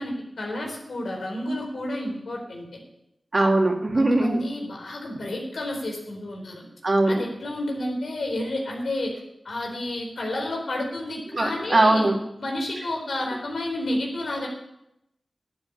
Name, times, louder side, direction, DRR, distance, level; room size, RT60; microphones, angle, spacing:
voice 1, 0.0-2.8 3.9-6.6 7.1-9.1 9.4-12.1 12.4-14.5, left 1 dB, 85° left, 0 dB, 4.2 m, -30 dB
voice 2, 3.3-4.4 6.8-7.2 11.3-12.2, right 2 dB, 50° right, 2 dB, 2.5 m, -20 dB
12.0 x 7.8 x 8.4 m, 0.83 s
cardioid pair, 45°, 0 cm